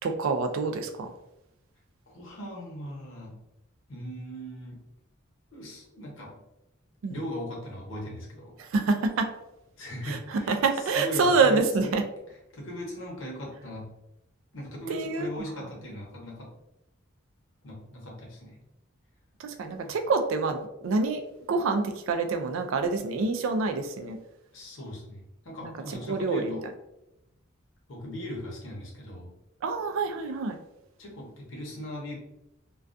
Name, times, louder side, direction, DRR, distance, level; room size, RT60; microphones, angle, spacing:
voice 1, 0.0-1.1 7.0-7.2 8.6-9.3 10.0-10.2 10.5-12.0 14.9-15.5 19.4-24.2 25.6-25.7 26.1-26.6 29.6-30.6, right 4 dB, 75° right, 6 dB, 0.3 m, -27 dB
voice 2, 2.1-3.4 3.9-4.8 5.5-6.4 7.1-8.6 9.7-12.0 12.5-13.9 14.5-16.5 17.6-18.6 19.8-20.0 24.5-26.7 27.9-29.3 31.0-32.1, equal, 70° left, -2 dB, 0.8 m, -39 dB
2.3 x 2.3 x 2.4 m, 0.88 s
head